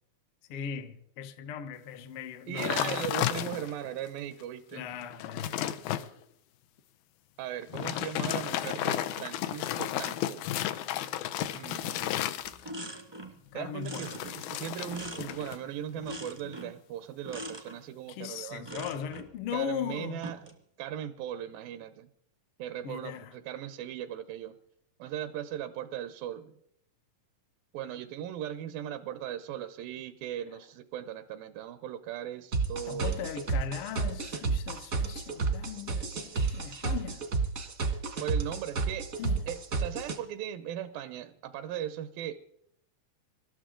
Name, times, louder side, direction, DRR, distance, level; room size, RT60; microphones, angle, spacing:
voice 1, 0.5-3.0 4.7-5.6 13.5-14.2 18.1-20.2 22.8-23.3 32.9-37.3 39.2-39.4, left 8 dB, 75° left, 1.3 m, -38 dB
voice 2, 2.5-4.9 7.4-10.5 11.5-12.0 13.5-18.8 19.5-20.5 20.8-22.1 22.6-24.6 25.0-26.5 27.7-33.2 38.2-39.1 39.5-42.3, right 11 dB, 85° right, 2.5 m, -38 dB
sound 1, 2.6-3.9 4.4-4.5 4.9-6.1 7.6-12.9 13.9-15.6 15.9-16.3, left 12 dB, 90° left, 2.5 m, -33 dB
sound 2, 12.0-12.2 12.4-13.4 13.8-15.6 16.0-16.8 17.2-17.8 18.6-19.3 20.1-20.6, right 1 dB, 20° right, 0.7 m, -43 dB
sound 3, 32.5-40.2, right 4 dB, 55° right, 0.9 m, -30 dB
26.0 x 12.5 x 3.8 m
omnidirectional pair, 4.0 m